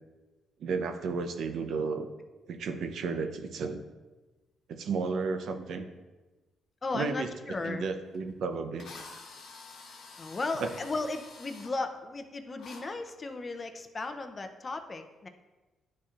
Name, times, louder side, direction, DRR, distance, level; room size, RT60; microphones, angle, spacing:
voice 1, 0.6-2.1 2.5-3.8 4.7-5.9 6.9-7.3 7.6-8.9 10.6-10.7, right 4 dB, 70° right, 7 dB, 0.6 m, -33 dB
voice 2, 6.8-7.9 10.2-15.3, left 3 dB, 30° left, 8 dB, 0.6 m, -35 dB
Drill, 8.1-8.2 8.8-11.7 12.6-12.8, left 4 dB, 75° left, 1.3 m, -48 dB
10.5 x 4.3 x 2.5 m, 1.2 s
cardioid pair, 90°, 0 cm